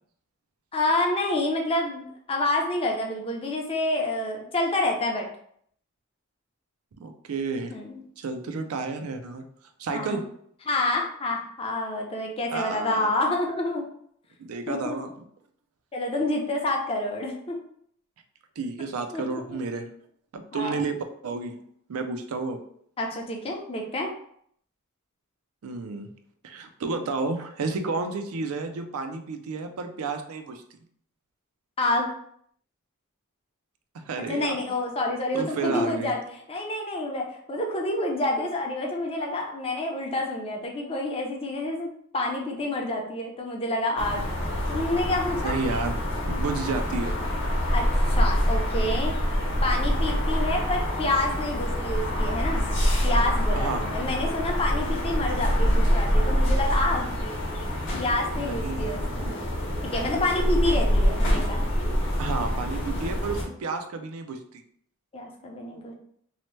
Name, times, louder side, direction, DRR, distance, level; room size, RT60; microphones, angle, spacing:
voice 1, 0.7-5.3 7.7-8.0 9.9-10.2 10.7-13.8 14.7-15.0 15.9-17.6 19.1-19.6 20.5-20.8 23.0-24.1 31.8-32.1 34.3-36.2 36.5-44.2 44.7-45.5 47.7-49.2 49.6-52.6 53.0-57.1 57.9-59.3 59.8-61.7 65.1-65.9, left 2 dB, 25° left, 1 dB, 0.5 m, -28 dB
voice 2, 7.0-7.7 8.2-9.4 9.8-10.2 12.5-13.1 14.4-15.1 18.6-19.9 20.3-21.0 21.2-21.6 21.9-22.6 25.6-26.1 26.4-30.6 34.1-34.6 35.3-36.1 45.4-45.9 46.3-47.2 53.6-53.9 58.4-59.4 62.2-64.6, right 4 dB, 85° right, 7 dB, 0.4 m, -31 dB
sound 1, 44.0-63.4, equal, 60° left, 0.8 m, -25 dB
2.8 x 2.1 x 3.0 m, 0.65 s
head